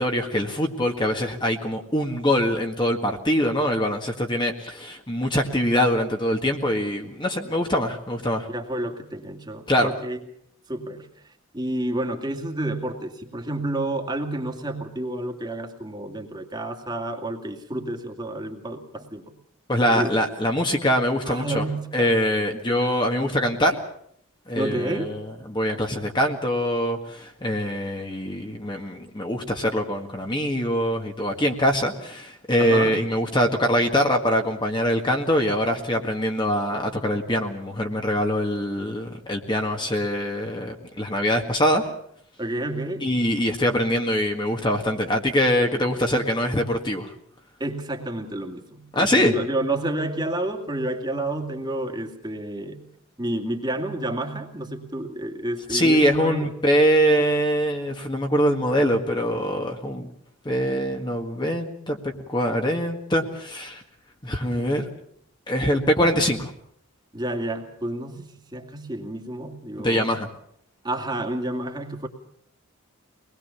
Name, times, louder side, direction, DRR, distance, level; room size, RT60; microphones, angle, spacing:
voice 1, 0.0-8.5 9.7-9.9 19.7-21.6 21.9-23.8 24.5-41.9 43.0-47.1 48.9-49.3 55.7-60.1 60.5-63.8 64.2-64.9 65.5-66.5 69.8-70.3, equal, 20° left, 2 dB, 1.8 m, -23 dB
voice 2, 8.5-10.2 10.7-19.3 19.9-20.2 21.2-22.1 24.5-25.1 32.6-33.0 42.4-43.1 47.6-52.8 53.2-56.6 67.1-70.1 70.8-72.1, right 1 dB, 20° right, 3 dB, 2.3 m, -30 dB
24.0 x 20.0 x 7.1 m, 0.69 s
head